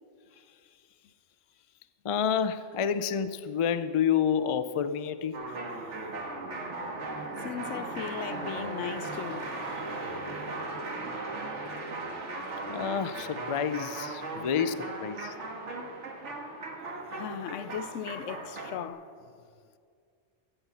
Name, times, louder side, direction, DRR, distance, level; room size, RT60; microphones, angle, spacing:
voice 1, 2.0-5.4 12.7-15.4, left 7 dB, 60° left, 0.3 m, -29 dB
sound 1, 5.3-18.9, right 2 dB, 70° right, 1.8 m, -37 dB
voice 2, 7.4-9.5 9.9-10.0 17.1-19.1, left 9 dB, 85° left, 1.0 m, -37 dB
13.0 x 8.9 x 7.1 m
omnidirectional pair, 1.3 m